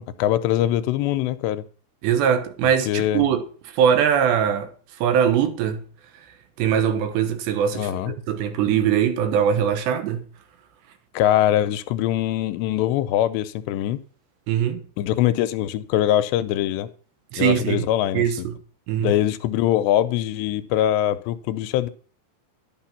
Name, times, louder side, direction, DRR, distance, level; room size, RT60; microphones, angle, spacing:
voice 1, 0.0-1.6 2.9-3.3 7.7-8.1 11.1-14.0 15.0-16.9 17.4-18.5 19.0-21.9, left 12 dB, 90° left, 2.9 m, -22 dB
voice 2, 2.0-3.5 3.7-4.7 5.0-5.9 6.6-10.3 14.5-14.8 17.3-17.9 18.1-18.6 18.9-19.2, right 8 dB, 85° right, 3.4 m, -21 dB
11.5 x 8.8 x 5.8 m
omnidirectional pair, 5.0 m